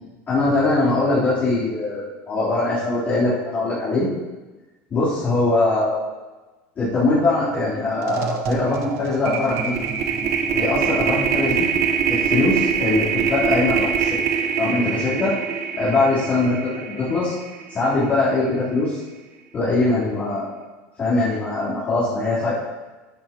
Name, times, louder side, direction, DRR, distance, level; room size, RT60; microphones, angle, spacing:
voice 1, 0.3-4.1 4.9-5.9 6.8-9.7 10.5-11.7 12.1-14.2 14.6-15.4 15.8-16.6 16.9-17.3 17.7-19.0 19.5-20.5 21.0-22.5, left 2 dB, 30° left, -12 dB, 3.8 m, -21 dB
sound 1, 7.5-7.7 8.0-18.2, right 7 dB, 45° right, 1.1 m, -24 dB
12.5 x 9.5 x 3.1 m, 1.2 s
supercardioid pair, 145°, 7 cm